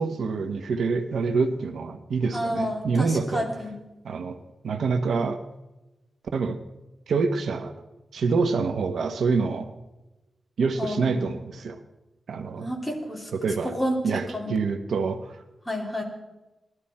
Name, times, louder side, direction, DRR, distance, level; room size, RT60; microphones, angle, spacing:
voice 1, 0.0-3.5 4.0-4.4 4.6-5.4 6.3-6.6 7.1-7.7 8.1-9.7 10.6-11.8 12.3-12.7 13.3-13.7 14.0-15.4, right 4 dB, 90° right, 7 dB, 1.0 m, -26 dB
voice 2, 2.3-3.7 10.8-11.3 12.5-13.3 13.6-14.5 15.6-16.0, equal, 5° left, -2 dB, 3.1 m, -30 dB
19.5 x 12.5 x 4.3 m, 1.0 s
wide cardioid pair, 135°, 0 cm